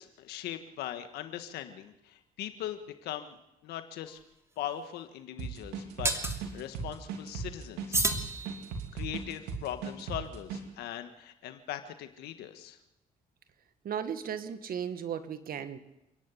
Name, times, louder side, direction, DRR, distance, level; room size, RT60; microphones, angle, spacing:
voice 1, 0.0-3.4 3.6-4.2 4.6-8.0 8.9-12.8, left 11 dB, 85° left, 8 dB, 1.6 m, -40 dB
sound 1, 4.1-4.2 6.0-6.4 7.9-9.0, right 2 dB, 15° right, 2.9 m, -31 dB
sound 2, 5.4-10.6, right 5 dB, 90° right, 3.1 m, -37 dB
voice 2, 13.8-15.8, right 8 dB, 65° right, 10 dB, 1.7 m, -35 dB
28.5 x 11.0 x 8.4 m, 0.88 s
supercardioid pair, 60°, 16 cm